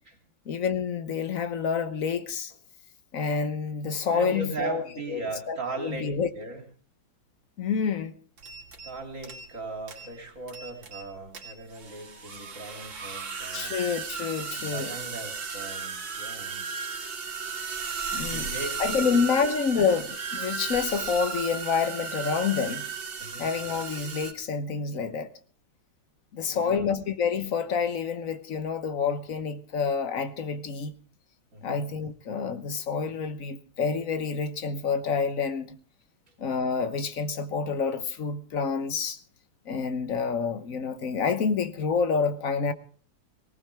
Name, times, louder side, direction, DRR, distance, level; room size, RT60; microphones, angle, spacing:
voice 1, 0.5-2.5 3.1-5.2 5.5-6.3 7.6-8.1 13.5-14.9 18.1-18.5 18.8-22.9 23.4-25.3 26.3-30.9 31.6-35.8 36.4-39.2 39.7-42.7, left 5 dB, 50° left, 1.2 m, -28 dB
voice 2, 4.1-6.6 8.8-13.8 14.5-16.6 18.2-19.4 23.2-23.5 26.4-26.9 31.5-31.8 36.3-36.4, right 3 dB, 40° right, 3.4 m, -38 dB
sound 1, 8.4-8.9 9.2-9.6 9.9-10.1 10.5-11.1 11.3-24.3, right 5 dB, 75° right, 3.0 m, -35 dB
19.0 x 18.5 x 3.4 m
omnidirectional pair, 2.1 m